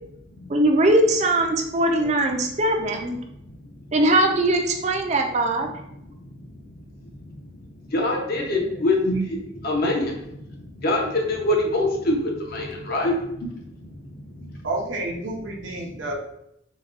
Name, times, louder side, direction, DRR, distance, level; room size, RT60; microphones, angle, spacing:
voice 1, 0.5-3.2 3.9-5.7, right 1 dB, 35° right, 3 dB, 0.4 m, -20 dB
voice 2, 3.4-3.7 6.0-14.7 15.8-16.0, left 1 dB, 50° left, 0 dB, 0.7 m, -26 dB
voice 3, 8.5-8.8 9.1-9.2 14.6-16.2, right 2 dB, 80° right, 1 dB, 0.7 m, -30 dB
3.9 x 2.2 x 2.4 m, 0.80 s
head